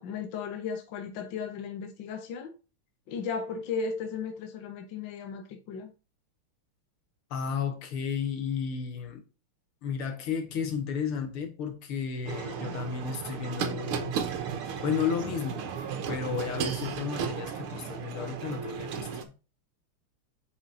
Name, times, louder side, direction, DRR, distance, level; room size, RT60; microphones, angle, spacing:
voice 1, 0.0-2.5 3.1-5.9, left 5 dB, 65° left, 1.6 m, -35 dB
voice 2, 7.3-9.2 9.8-14.2 14.8-15.7 16.1-19.3, left 6 dB, 80° left, 2.4 m, -33 dB
sound 1, 12.3-19.2, right 7 dB, 85° right, 1.8 m, -34 dB
8.6 x 5.4 x 2.7 m
omnidirectional pair, 2.4 m